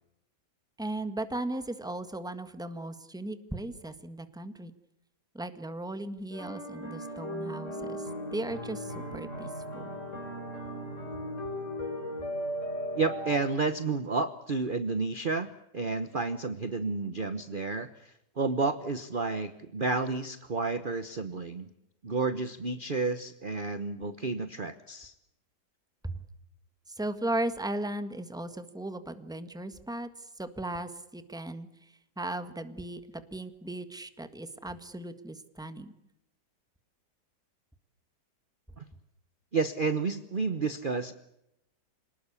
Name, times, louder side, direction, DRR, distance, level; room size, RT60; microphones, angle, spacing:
voice 1, 0.8-4.7 5.3-8.0 8.3-9.8 26.0-26.2 26.9-30.1 30.4-35.9, right 1 dB, ahead, 10 dB, 1.5 m, -37 dB
sound 1, 6.3-13.4, equal, 45° left, 5.2 m, -37 dB
voice 2, 12.9-21.7 22.0-25.1 38.8-38.9 39.5-41.1, right 4 dB, 35° right, 11 dB, 1.1 m, -31 dB
28.0 x 19.0 x 8.4 m, 0.85 s
omnidirectional pair, 1.8 m